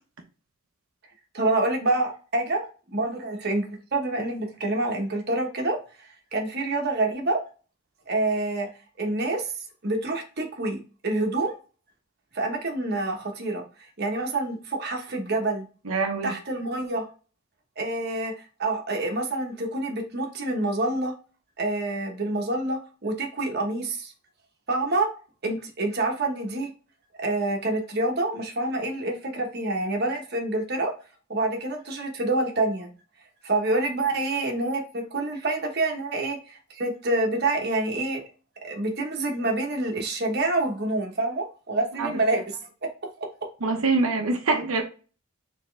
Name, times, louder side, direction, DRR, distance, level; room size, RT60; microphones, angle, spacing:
voice 1, 1.3-7.4 8.1-8.7 9.0-9.5 9.8-11.5 12.3-13.6 14.0-15.7 16.2-17.1 17.8-18.3 18.6-21.1 21.6-24.1 24.7-25.1 25.4-26.7 27.2-30.9 31.3-32.9 33.4-38.2 38.6-42.6 42.8-42.9, right 2 dB, 50° right, 1.1 m, -27 dB
voice 2, 15.9-16.3 42.0-42.1 43.6-44.8, right 3 dB, 85° right, 0.9 m, -24 dB
4.2 x 3.6 x 3.3 m
head